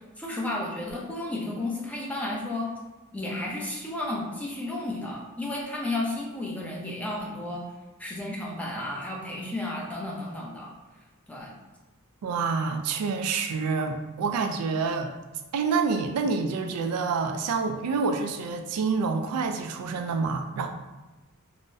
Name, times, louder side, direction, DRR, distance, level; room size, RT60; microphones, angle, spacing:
voice 1, 0.2-2.7 3.1-7.6 8.0-10.7 11.3-11.5, left 2 dB, 5° left, -3 dB, 0.5 m, -32 dB
voice 2, 12.2-15.1 15.5-20.7, right 4 dB, 85° right, 5 dB, 0.3 m, -27 dB
3.7 x 2.0 x 2.6 m, 1.1 s
head